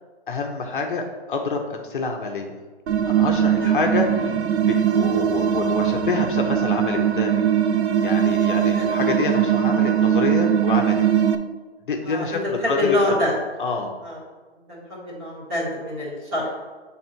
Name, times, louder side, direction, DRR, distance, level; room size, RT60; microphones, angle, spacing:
voice 1, 0.3-2.6 3.1-7.5 8.0-11.1 11.9-12.4 12.7-13.2 13.6-14.0, left 4 dB, 50° left, 2 dB, 0.8 m, -27 dB
sound 1, 2.9-11.4, right 9 dB, 80° right, 0.7 m, -20 dB
voice 2, 12.0-13.3 14.0-14.2 14.7-16.6, left 1 dB, 20° right, -6 dB, 1.7 m, -25 dB
7.6 x 3.6 x 4.4 m, 1.3 s
hypercardioid pair, 165°, 33 cm